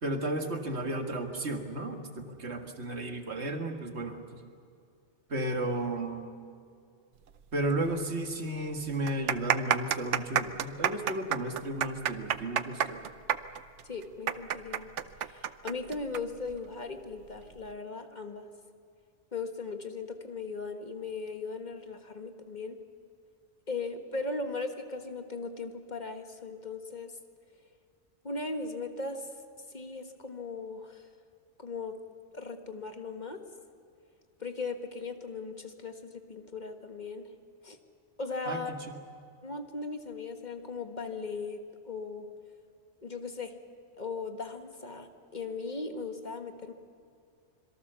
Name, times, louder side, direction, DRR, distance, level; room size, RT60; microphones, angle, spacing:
voice 1, 0.0-4.4 5.3-6.3 7.5-13.0 38.5-39.0, right 1 dB, 70° right, 5 dB, 2.2 m, -33 dB
sound 1, 7.9-8.0 8.2-8.3 8.9-16.2 16.5-16.6 17.3-17.6, right 9 dB, 85° right, 1.1 m, -29 dB
voice 2, 13.8-14.9 15.2-18.5 19.3-22.8 23.7-27.1 28.2-29.3 29.7-31.1 31.6-32.0 32.3-33.4 34.4-37.3 37.6-37.8 38.2-38.7 39.4-42.3 43.0-43.5 44.0-46.7, left 4 dB, 40° left, 6 dB, 1.6 m, -38 dB
26.0 x 23.0 x 6.9 m, 2.3 s
omnidirectional pair, 1.2 m